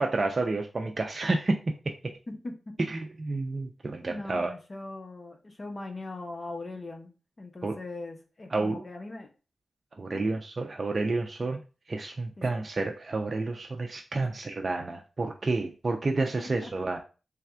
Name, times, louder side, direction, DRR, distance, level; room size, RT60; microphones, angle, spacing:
voice 1, 0.0-1.6 2.9-4.5 7.6-7.8 8.5-8.8 10.0-11.6 11.9-17.0, right 3 dB, 45° right, 2 dB, 0.5 m, -30 dB
voice 2, 4.1-7.1 7.4-9.3 10.1-10.2 12.4-12.6 14.2-14.3 16.4-16.7, left 2 dB, 45° left, 4 dB, 0.9 m, -40 dB
3.3 x 2.3 x 4.3 m, 0.33 s
cardioid pair, 50°, 0 cm